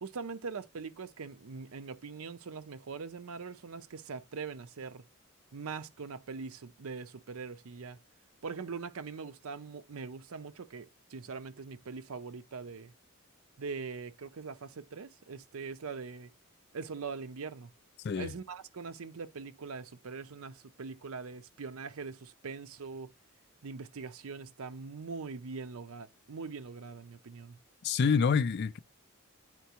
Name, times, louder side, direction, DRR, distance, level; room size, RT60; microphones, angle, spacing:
voice 1, 0.0-5.0 5.5-8.0 8.4-12.9 13.6-16.3 16.7-17.7 18.2-23.1 23.6-27.6, right 5 dB, 75° right, 0.6 m, -42 dB
voice 2, 27.8-28.8, left 6 dB, 50° left, 0.4 m, -27 dB
9.3 x 4.4 x 2.9 m
head